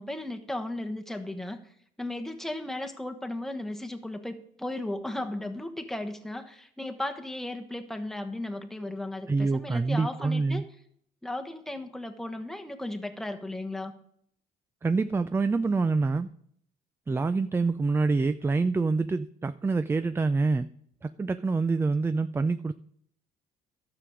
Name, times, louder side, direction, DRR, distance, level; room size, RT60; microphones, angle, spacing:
voice 1, 0.0-1.6 2.0-10.6 11.2-13.9, left 1 dB, ahead, 4 dB, 1.2 m, -35 dB
voice 2, 9.3-10.6 14.8-16.3 17.1-20.7 21.0-22.7, right 3 dB, 15° right, 12 dB, 0.4 m, -26 dB
12.5 x 6.9 x 5.0 m, 0.67 s
cardioid pair, 110°, 17 cm